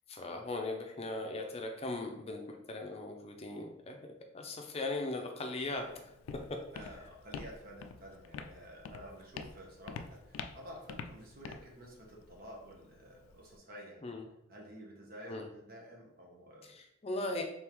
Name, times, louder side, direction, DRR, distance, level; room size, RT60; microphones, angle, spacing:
voice 1, 0.1-4.0 4.3-6.1 14.0-14.2 15.3-15.5 16.6-17.4, left 2 dB, 30° left, 3 dB, 0.5 m, -39 dB
Walk footsteps, 5.6-13.6, left 5 dB, 90° left, 0.3 m, -47 dB
voice 2, 6.7-14.1 14.5-16.7, equal, 45° right, -1 dB, 0.9 m, -51 dB
3.6 x 3.4 x 3.0 m, 0.83 s
head